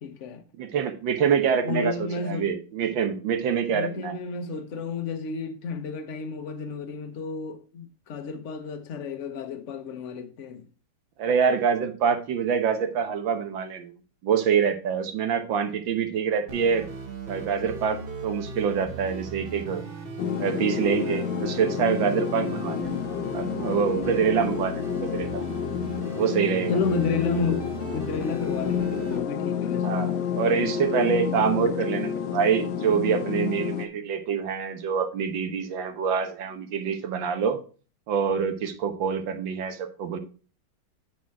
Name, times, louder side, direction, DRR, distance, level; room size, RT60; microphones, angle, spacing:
voice 1, 0.0-0.4 1.6-2.5 3.7-10.7 26.7-30.1, left 5 dB, 45° left, 1.1 m, -31 dB
voice 2, 0.6-4.2 11.2-13.9 14.2-16.9 17.3-19.8 20.4-23.0 23.3-25.4 26.2-26.8 29.8-37.6 38.1-40.2, right 7 dB, 80° right, 1.7 m, -26 dB
sound 1, 16.5-29.2, right 4 dB, 40° right, 0.9 m, -38 dB
sound 2, 20.2-33.9, left 9 dB, 70° left, 1.4 m, -30 dB
9.0 x 4.4 x 4.6 m
omnidirectional pair, 2.1 m